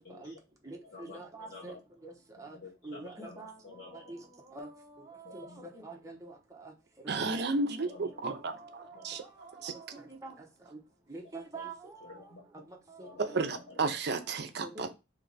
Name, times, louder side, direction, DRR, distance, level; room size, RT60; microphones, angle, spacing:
voice 1, 0.0-0.4 0.6-1.8 2.4-4.0 5.2-5.7 7.8-8.1 9.0-9.1 11.5-11.7 12.0-12.4 13.0-13.6, left 3 dB, 60° left, 1.0 m, -50 dB
voice 2, 1.1-1.7 2.0-2.1 2.4-2.5 2.8-3.5 4.1-4.2 4.5-4.7 5.1-6.3 6.6-6.7 7.0-7.4 8.5-8.7 9.7-10.3 10.7-10.8 11.1-11.9 13.0-13.1 14.6-14.9, right 3 dB, 20° right, 0.9 m, -44 dB
voice 3, 7.1-10.0 13.2-14.9, right 3 dB, 65° right, 0.6 m, -33 dB
3.3 x 3.0 x 4.0 m
head